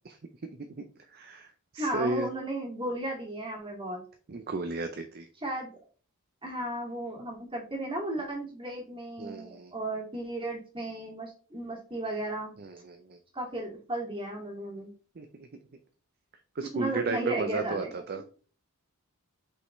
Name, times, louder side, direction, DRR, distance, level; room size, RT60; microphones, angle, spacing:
voice 1, 0.8-2.3 4.3-5.3 9.2-9.7 12.6-13.2 15.2-15.5 16.6-18.2, right 3 dB, 45° right, 7 dB, 0.5 m, -34 dB
voice 2, 1.8-4.0 5.4-5.7 6.4-12.5 13.3-14.9 16.7-18.0, right 1 dB, 25° right, -1 dB, 2.1 m, -34 dB
6.4 x 5.5 x 3.1 m, 0.40 s
head